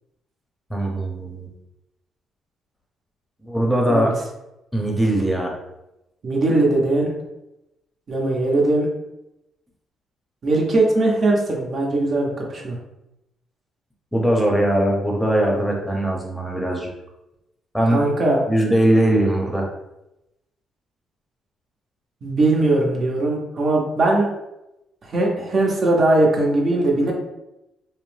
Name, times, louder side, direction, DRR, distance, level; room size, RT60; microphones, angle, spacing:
voice 1, 0.7-1.5 3.4-4.1 4.7-5.5 14.1-16.9 17.7-18.0 18.5-19.7, right 1 dB, ahead, -1 dB, 0.7 m, -20 dB
voice 2, 6.2-7.1 8.1-8.9 10.4-12.8 17.9-18.4 22.2-24.3 25.0-27.1, right 2 dB, 50° right, -1 dB, 0.7 m, -20 dB
2.7 x 2.0 x 3.2 m, 0.91 s
cardioid pair, 90°, 0 cm